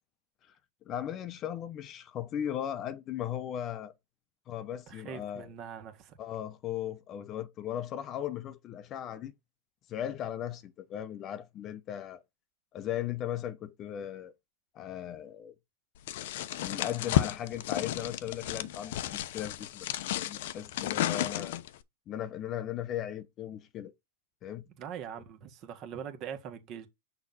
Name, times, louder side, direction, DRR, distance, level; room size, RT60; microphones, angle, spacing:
voice 1, 0.8-3.9 4.5-5.5 6.2-9.3 9.9-12.2 12.7-14.3 14.7-15.5 16.6-19.9 20.2-21.6 22.1-23.9 24.4-24.6, left 10 dB, 30° left, 0.8 m, -37 dB
voice 2, 4.9-6.2 24.7-26.9, right 8 dB, 40° right, 1.6 m, -42 dB
sound 1, 16.1-21.8, left 13 dB, 65° left, 0.7 m, -32 dB
6.5 x 3.9 x 5.9 m
hypercardioid pair, 130°, 0 cm